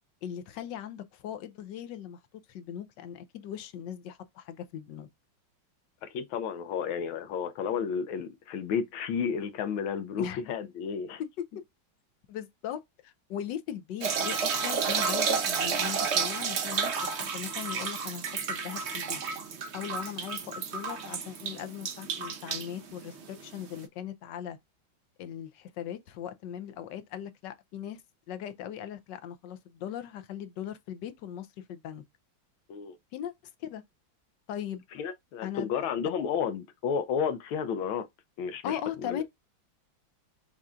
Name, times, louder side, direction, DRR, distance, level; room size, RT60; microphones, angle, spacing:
voice 1, 0.2-2.2 2.5-5.1 10.2-10.4 11.2-11.6 12.3-19.2 19.7-24.6 25.2-28.0 28.3-32.0 33.1-33.3 33.6-33.8 34.5-34.8 35.4-35.7 38.6-39.2, left 10 dB, 70° left, 1.2 m, -39 dB
voice 2, 6.0-11.2 32.7-33.0 34.9-38.1 38.4-39.2, left 7 dB, 90° left, 1.6 m, -32 dB
sound 1, 14.0-23.8, right 6 dB, 75° right, 0.6 m, -31 dB
5.6 x 2.4 x 3.6 m
omnidirectional pair, 2.2 m